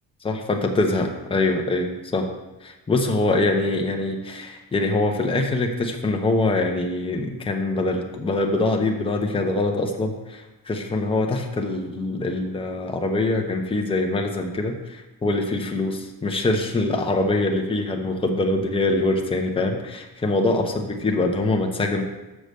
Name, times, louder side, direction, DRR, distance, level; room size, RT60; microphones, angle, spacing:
voice 1, 0.2-2.3 2.6-22.0, left 2 dB, 15° left, 2 dB, 0.8 m, -24 dB
6.8 x 4.8 x 6.5 m, 1.1 s
cardioid pair, 140°, 41 cm